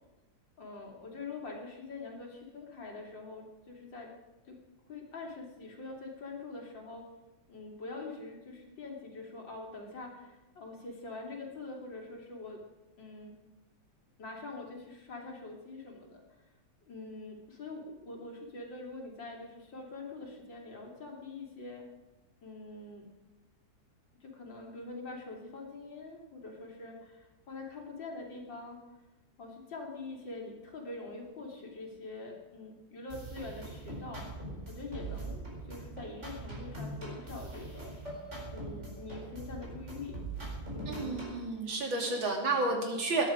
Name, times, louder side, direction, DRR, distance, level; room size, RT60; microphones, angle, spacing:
voice 1, 0.6-4.1 4.5-4.6 4.9-7.1 7.5-12.6 13.0-13.3 14.2-16.2 16.9-21.9 22.4-23.1 24.2-28.8 29.4-34.3 34.7-38.0 38.5-40.2 40.7-41.3 42.1-42.2, left 3 dB, 70° left, 0 dB, 3.6 m, -44 dB
sound 1, 33.1-41.5, right 2 dB, 35° right, 5.1 m, -42 dB
voice 2, 40.9-43.3, right 2 dB, 75° right, 1 dB, 3.5 m, -31 dB
20.0 x 11.5 x 5.1 m, 1.1 s
omnidirectional pair, 2.1 m